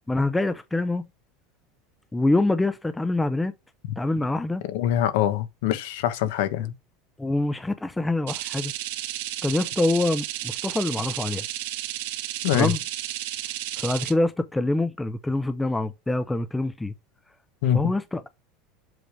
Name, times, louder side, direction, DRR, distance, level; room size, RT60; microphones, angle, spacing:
voice 1, 0.1-1.1 2.1-3.5 4.0-4.6 7.2-8.7 9.4-11.4 12.5-12.8 13.8-16.9 17.7-18.3, left 2 dB, 5° left, 0.5 m, -25 dB
voice 2, 4.7-6.7 12.4-12.7 17.6-17.9, left 11 dB, 70° left, 1.0 m, -24 dB
sound 1, 8.3-14.1, right 14 dB, 75° right, 1.1 m, -32 dB
7.8 x 3.3 x 5.1 m
supercardioid pair, 165°, 0 cm